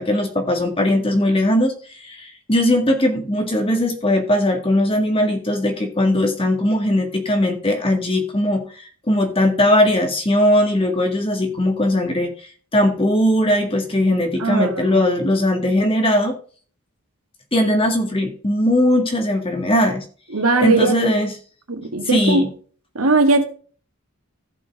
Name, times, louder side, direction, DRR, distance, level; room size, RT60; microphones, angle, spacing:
voice 1, 0.0-1.7 2.0-8.6 9.1-12.3 12.7-16.3 17.5-20.0 20.6-21.3 22.1-22.5, left 1 dB, 25° left, 4 dB, 1.9 m, -19 dB
voice 2, 14.4-15.0 20.3-21.0 21.7-22.5 23.0-23.4, right 3 dB, 75° right, 5 dB, 1.9 m, -18 dB
15.0 x 5.5 x 3.7 m, 0.42 s
head